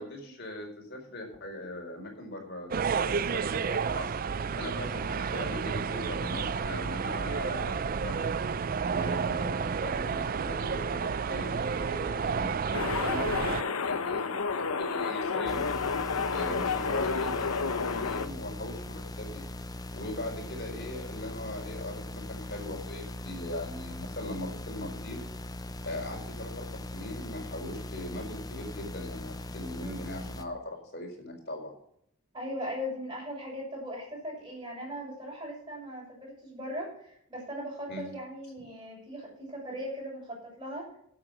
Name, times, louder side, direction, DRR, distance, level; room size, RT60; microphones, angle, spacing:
voice 1, 0.0-8.3 8.9-15.7 16.3-19.4 19.9-25.2 25.8-31.7 37.9-38.1, left 1 dB, 50° left, 1 dB, 4.5 m, -40 dB
sound 1, 2.7-13.6, right 5 dB, 40° right, 0.4 m, -31 dB
voice 2, 8.9-9.2 29.8-30.0 32.3-40.9, equal, 20° right, -3 dB, 6.8 m, -39 dB
sound 2, 12.7-18.3, left 5 dB, 90° left, 1.0 m, -30 dB
sound 3, 15.5-30.5, left 1 dB, 15° left, 0.7 m, -40 dB
12.5 x 8.1 x 6.2 m, 0.68 s
head